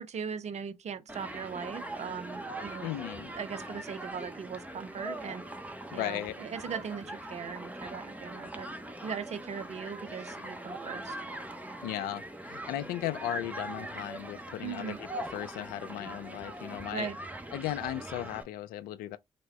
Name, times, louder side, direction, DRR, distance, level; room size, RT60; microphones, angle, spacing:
voice 1, 0.0-2.9 3.3-5.4 5.9-8.7 9.0-11.2 14.6-15.0 16.9-17.2, right 6 dB, 45° right, 0.6 m, -39 dB
Human group actions, 1.1-18.4, right 1 dB, 10° right, 0.8 m, -41 dB
voice 2, 2.8-3.3 5.9-6.4 11.8-17.1 17.5-19.2, left 13 dB, 70° left, 0.4 m, -36 dB
3.4 x 2.1 x 3.3 m
hypercardioid pair, 45°, 15 cm